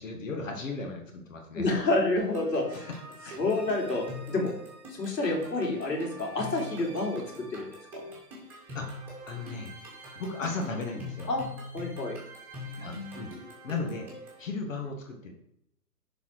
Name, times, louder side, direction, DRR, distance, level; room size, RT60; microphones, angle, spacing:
voice 1, 0.0-1.6 3.2-3.4 8.7-9.7 10.1-11.3 12.7-13.3 13.6-14.1 14.4-15.3, left 3 dB, 50° left, 3 dB, 1.7 m, -36 dB
voice 2, 1.5-2.9 3.4-4.5 4.9-7.2 7.5-7.7 7.9-8.1 11.3-11.5 11.7-12.2, left 2 dB, 80° left, 0 dB, 3.5 m, -28 dB
sound 1, 2.2-14.5, left 1 dB, 5° right, 1.7 m, -43 dB
11.0 x 4.5 x 4.8 m, 0.77 s
hypercardioid pair, 165°, 49 cm